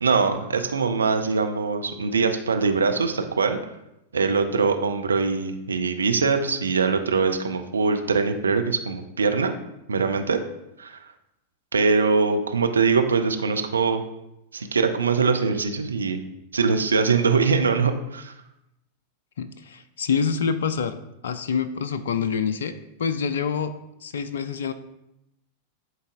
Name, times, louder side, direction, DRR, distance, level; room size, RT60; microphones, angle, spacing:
voice 1, 0.0-3.6 4.1-9.5 9.9-10.4 10.8-11.0 11.7-14.0 14.5-16.2 16.5-18.3, right 4 dB, 75° right, 6 dB, 0.5 m, -22 dB
voice 2, 19.4-21.0 21.2-22.7 23.0-23.7 24.0-24.7, left 6 dB, 65° left, 11 dB, 0.3 m, -26 dB
10.5 x 4.0 x 2.6 m, 0.87 s
figure-of-eight pair, 90°, 0 cm